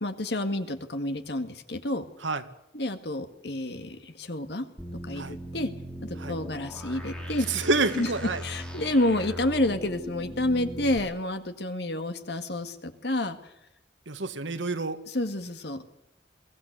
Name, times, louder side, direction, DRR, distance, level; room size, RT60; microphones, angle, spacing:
voice 1, 0.0-2.1 2.7-4.7 5.0-5.7 6.0-7.5 7.9-8.1 8.4-13.4 15.1-15.8, left 1 dB, 60° left, 8 dB, 1.9 m, -29 dB
sound 1, 4.8-11.0, equal, 5° left, 3.2 m, -39 dB
voice 2, 7.5-8.4 14.1-15.0, right 3 dB, 85° right, 10 dB, 1.7 m, -28 dB
22.5 x 16.5 x 8.2 m, 0.84 s
head